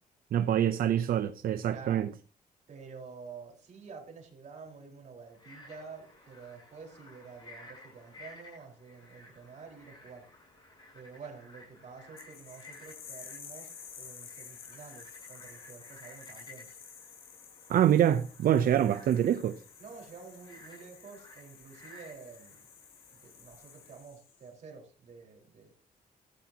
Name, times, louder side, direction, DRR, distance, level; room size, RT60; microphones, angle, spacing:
voice 1, 0.3-2.1 17.7-19.6, right 10 dB, 70° right, 0.7 m, -25 dB
voice 2, 1.7-2.1 2.7-10.3 10.9-16.8 19.8-22.7 23.1-25.7, right 5 dB, 50° right, 4.8 m, -49 dB
Frog, 5.3-24.0, left 2 dB, 30° left, 8.0 m, -55 dB
sound 1, 12.2-24.5, left 7 dB, 75° left, 3.6 m, -51 dB
15.0 x 14.5 x 2.9 m
wide cardioid pair, 155°, 15 cm